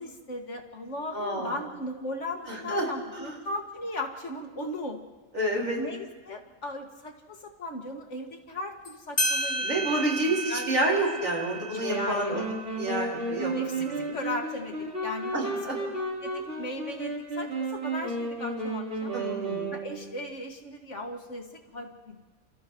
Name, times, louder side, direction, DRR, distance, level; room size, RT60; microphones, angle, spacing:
voice 1, 0.0-5.0 5.8-11.0 11.9-12.4 13.5-15.5 15.8-15.9 16.2-19.1 19.7-22.2, left 1 dB, 65° left, 2 dB, 2.5 m, -37 dB
voice 2, 1.1-1.6 2.5-2.9 3.1-3.4 5.3-5.8 9.6-12.4 12.8-14.2 15.3-15.8 19.1-19.7, right 1 dB, 85° right, -2 dB, 5.4 m, -29 dB
sound 1, 8.8-8.9 9.2-14.3, right 1 dB, 40° left, 4.9 m, -33 dB
sound 2, 11.8-20.2, right 2 dB, 60° right, 4.5 m, -33 dB
30.0 x 29.0 x 3.2 m, 1.3 s
omnidirectional pair, 1.4 m